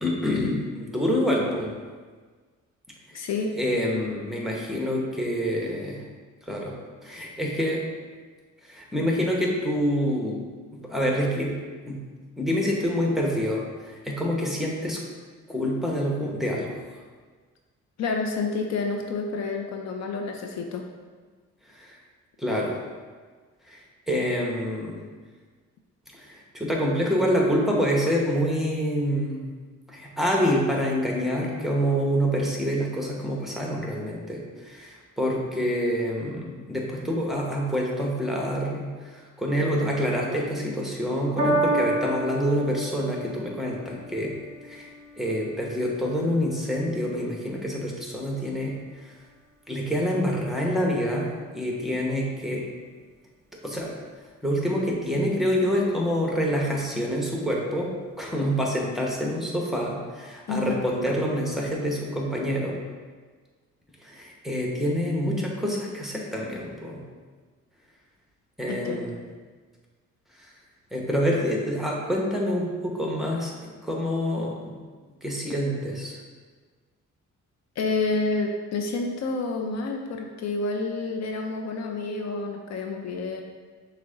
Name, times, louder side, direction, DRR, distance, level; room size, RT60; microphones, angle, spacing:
voice 1, 0.0-1.7 3.1-3.2 3.5-6.0 6.4-6.7 7.0-7.8 8.6-10.4 10.7-11.6 11.8-12.0 12.4-15.0 15.5-16.8 21.7-22.0 22.4-22.8 23.7-25.0 26.1-29.4 29.9-44.3 44.6-49.1 49.7-52.6 53.6-53.9 54.4-57.9 58.2-62.8 64.0-67.0 68.6-69.2 70.3-70.5 70.9-73.5 73.8-74.7 75.2-76.2, equal, ahead, -2 dB, 0.9 m, -27 dB
voice 2, 3.1-3.5 18.0-20.8 60.5-60.8 68.7-69.2 77.8-83.4, left 3 dB, 60° left, 2 dB, 0.5 m, -29 dB
Piano, 41.4-48.0 48.8-48.9, right 2 dB, 20° right, 1.5 m, -31 dB
6.0 x 2.2 x 3.8 m, 1.5 s
cardioid pair, 90°, 30 cm